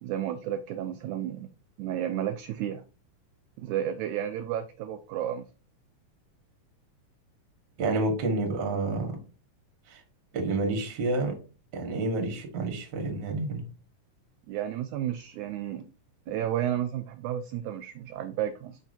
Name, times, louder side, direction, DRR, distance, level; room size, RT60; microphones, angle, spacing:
voice 1, 0.0-1.5 1.8-2.8 3.6-5.5 14.5-15.8 16.3-18.8, right 11 dB, 80° right, 8 dB, 1.8 m, -32 dB
voice 2, 7.8-9.2 9.9-10.0 10.3-11.4 11.7-13.6, right 2 dB, 45° right, 3 dB, 1.7 m, -29 dB
7.2 x 5.6 x 2.6 m, 0.35 s
omnidirectional pair, 3.7 m